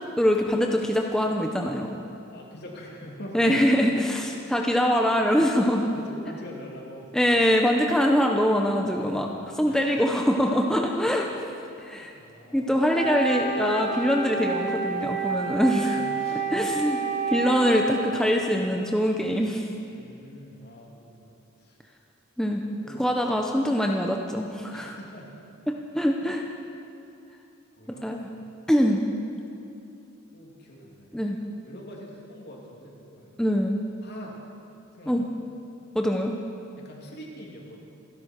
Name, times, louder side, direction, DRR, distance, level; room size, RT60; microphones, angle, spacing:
voice 1, 0.2-1.9 3.3-5.9 7.1-11.3 11.8-12.1 12.5-16.0 16.5-19.8 22.4-22.6 23.0-25.0 25.7-26.5 27.9-28.3 28.7-29.0 31.1-31.4 33.4-33.8 35.1-35.2 35.9-36.4, equal, 5° left, 1 dB, 0.7 m, -23 dB
voice 2, 2.3-3.6 4.6-4.7 5.7-7.1 9.1-10.3 11.7-12.7 15.9-16.4 17.4-17.5 19.9-21.3 21.6-21.8 22.6-23.1 24.7-25.3 27.8-28.1 30.3-31.2 31.6-33.5 34.0-34.4 34.9-35.2 36.8-37.8, equal, 55° left, -2 dB, 2.8 m, -44 dB
Wind instrument woodwind instrument, 12.9-18.1, right 5 dB, 45° right, 2.6 m, -29 dB
27.0 x 11.5 x 4.5 m, 2.7 s
head